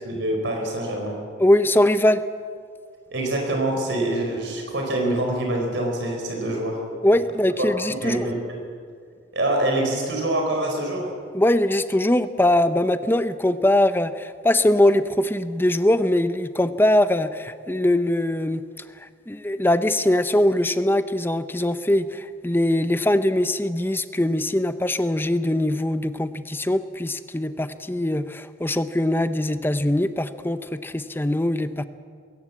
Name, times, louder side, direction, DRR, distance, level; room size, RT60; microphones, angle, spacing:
voice 1, 0.0-1.2 3.1-6.8 7.6-7.7 8.0-8.3 9.3-11.1, right 1 dB, 70° right, 1 dB, 4.6 m, -25 dB
voice 2, 1.4-2.2 7.0-8.3 11.3-18.6 19.0-31.8, left 1 dB, 10° left, 11 dB, 0.7 m, -21 dB
21.0 x 16.5 x 8.5 m, 2.1 s
head